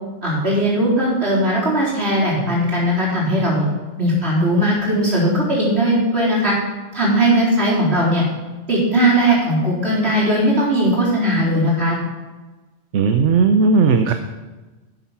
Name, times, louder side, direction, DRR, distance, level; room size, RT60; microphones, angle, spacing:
voice 1, 0.2-3.7 4.0-6.5 6.9-8.2 8.7-12.0, right 1 dB, 55° right, -5 dB, 4.5 m, -18 dB
voice 2, 12.9-14.1, right 4 dB, 70° right, 7 dB, 1.0 m, -15 dB
12.0 x 8.0 x 5.8 m, 1.2 s
omnidirectional pair, 1.3 m